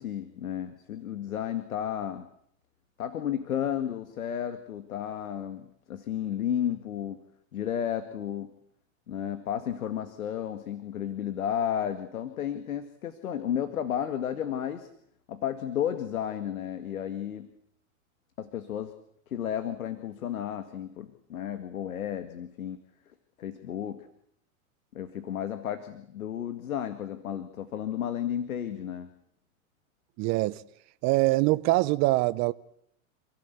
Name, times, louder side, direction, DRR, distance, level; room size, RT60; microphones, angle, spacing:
voice 1, 0.0-2.3 3.0-7.2 7.5-8.5 9.1-14.9 15.3-17.5 18.4-18.9 19.3-22.8 23.4-24.0 24.9-29.1, left 9 dB, 80° left, 2.0 m, -33 dB
voice 2, 30.2-30.6 31.0-32.5, right 20 dB, 40° right, 0.9 m, -24 dB
28.5 x 16.5 x 8.1 m
hypercardioid pair, 115°, 41 cm